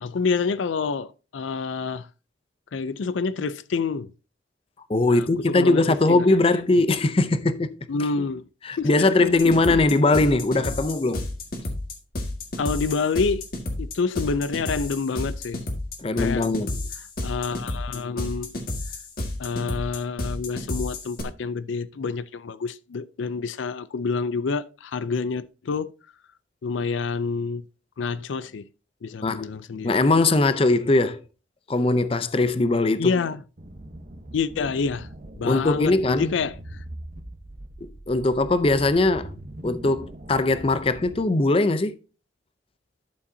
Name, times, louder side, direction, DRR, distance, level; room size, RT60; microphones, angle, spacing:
voice 1, 0.0-2.1 2.7-4.1 5.1-6.2 7.9-8.4 8.8-9.8 12.6-13.5 13.8-15.6 16.2-16.5 17.2-18.5 19.4-25.9 26.6-27.7 28.0-28.7 29.0-29.9 33.0-33.4 34.3-35.1 35.4-36.8, left 4 dB, 80° left, 0.4 m, -28 dB
voice 2, 4.9-7.8 8.6-11.3 16.0-16.8 29.2-29.5 29.8-31.2 31.7-33.1 35.4-36.3 38.1-39.3 39.6-42.0, left 2 dB, 30° left, 0.5 m, -21 dB
sound 1, 9.4-21.2, left 1 dB, 50° left, 1.7 m, -31 dB
sound 2, 33.6-41.2, right 1 dB, 45° right, 0.9 m, -41 dB
11.5 x 6.8 x 2.7 m
head